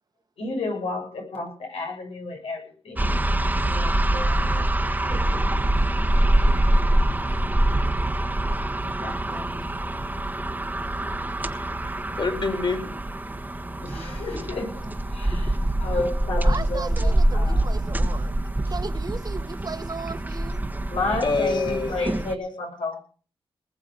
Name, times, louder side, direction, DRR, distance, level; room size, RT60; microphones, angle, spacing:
voice 1, 0.4-3.1 3.6-5.4 6.5-6.7 8.8-9.7 13.8-17.8 20.9-23.0, left 3 dB, 90° left, 7.1 m, -32 dB
sound 1, 3.0-22.3, right 1 dB, 20° right, 1.4 m, -24 dB
voice 2, 11.5-13.0 14.3-14.4 21.2-21.9, left 3 dB, 55° left, 4.4 m, -27 dB
voice 3, 16.4-18.3 18.6-20.6, right 4 dB, 40° right, 1.6 m, -36 dB
20.0 x 7.9 x 6.8 m
cardioid pair, 75°, 10 cm